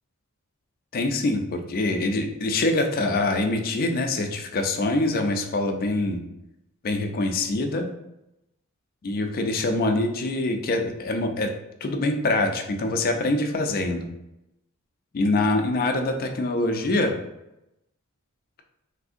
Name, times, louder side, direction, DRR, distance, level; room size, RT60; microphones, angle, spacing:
voice 1, 0.9-6.2 6.8-7.9 9.0-11.5 11.8-14.1 15.1-17.1, left 2 dB, 40° left, 4 dB, 0.4 m, -24 dB
3.5 x 2.6 x 2.5 m, 0.89 s
head